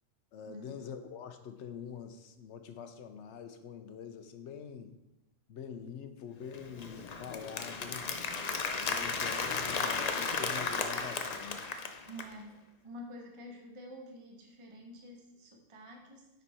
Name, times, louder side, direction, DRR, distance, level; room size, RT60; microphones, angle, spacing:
voice 1, 0.3-4.9 5.5-8.1 8.8-11.7, left 7 dB, 70° left, 9 dB, 1.0 m, -45 dB
Applause, 6.5-12.3, left 4 dB, 50° left, 0.5 m, -35 dB
voice 2, 12.1-16.3, equal, 25° right, 1 dB, 0.9 m, -48 dB
9.5 x 4.5 x 4.3 m, 0.96 s
omnidirectional pair, 1.3 m